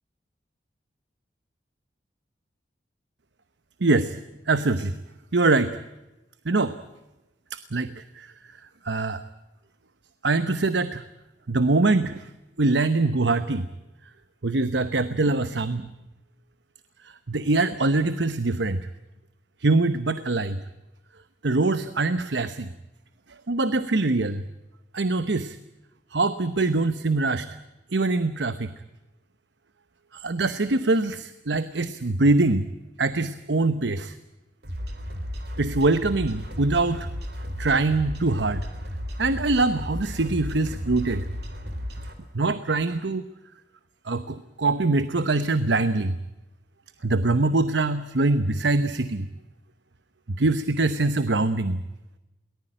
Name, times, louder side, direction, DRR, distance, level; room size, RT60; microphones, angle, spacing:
voice 1, 3.8-4.2 4.5-4.9 5.3-5.8 6.5-6.8 7.5-8.3 8.8-9.2 10.2-11.0 11.5-12.3 12.6-13.7 14.4-15.8 17.3-18.8 19.6-20.6 21.4-22.7 23.5-24.4 24.9-25.6 26.1-27.5 27.9-28.7 30.1-32.7 33.0-34.1 35.6-37.1 37.6-38.7 39.2-41.3 42.3-43.3 44.1-46.2 47.0-49.3 50.4-51.8, right 3 dB, 80° right, 12 dB, 0.9 m, -23 dB
sound 1, 34.6-42.1, equal, 65° right, 3.8 m, -34 dB
23.0 x 19.0 x 8.8 m, 1.0 s
head